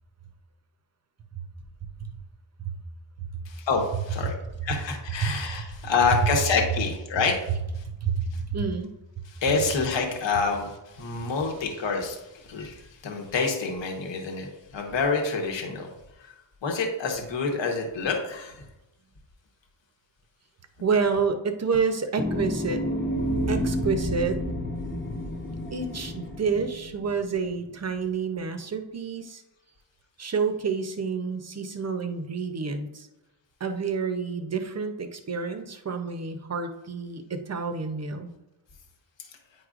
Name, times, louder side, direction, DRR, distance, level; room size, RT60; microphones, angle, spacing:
voice 1, 3.4-4.3 4.6-7.8 8.3-8.4 9.3-15.9 16.2-16.3 16.6-18.6, left 4 dB, 70° left, 1 dB, 1.2 m, -27 dB
voice 2, 8.0-8.9 20.8-22.8 23.5-24.4 25.7-29.4 30.2-33.1 33.6-38.3, right 5 dB, 35° right, 7 dB, 0.6 m, -29 dB
sound 1, 22.2-27.9, equal, 25° left, 0.9 m, -30 dB
9.5 x 4.7 x 2.5 m, 0.94 s
wide cardioid pair, 135°, 46 cm